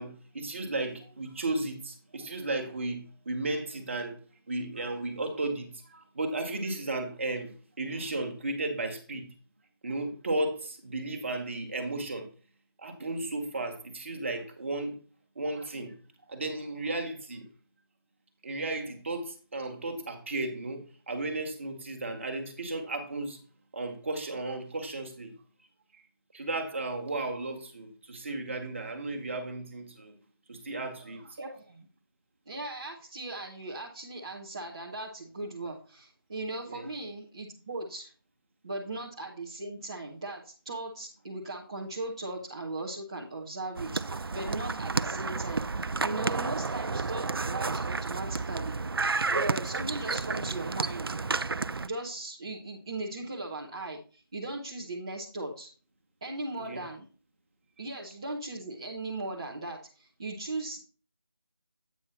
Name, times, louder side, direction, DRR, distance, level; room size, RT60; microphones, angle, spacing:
voice 1, 0.0-4.2 4.5-9.3 9.8-12.3 12.8-14.9 15.3-15.9 16.3-17.5 18.4-23.4 23.7-25.3 26.3-30.2 30.5-31.4 36.7-36.8 56.7-56.8, right 2 dB, 30° right, 1.2 m, -34 dB
voice 2, 31.4-31.9 32.5-38.1 38.6-45.6 46.0-48.8 49.3-51.2 51.8-55.7 56.2-57.1 57.8-60.8, right 2 dB, 15° right, 0.6 m, -38 dB
sound 1, 43.8-51.9, right 4 dB, 75° right, 0.4 m, -31 dB
8.3 x 5.3 x 4.2 m
figure-of-eight pair, 170°, 12 cm